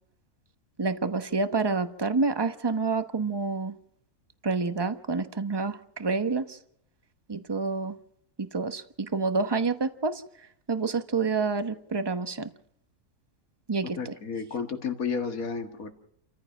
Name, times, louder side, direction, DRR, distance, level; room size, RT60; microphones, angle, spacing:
voice 1, 0.8-3.8 4.4-6.6 7.3-8.0 8.4-10.2 10.7-12.5 13.7-14.1, right 4 dB, 20° right, 10 dB, 0.9 m, -28 dB
voice 2, 14.0-15.9, left 5 dB, 70° left, 6 dB, 2.3 m, -32 dB
29.5 x 14.5 x 6.1 m, 0.69 s
omnidirectional pair, 1.5 m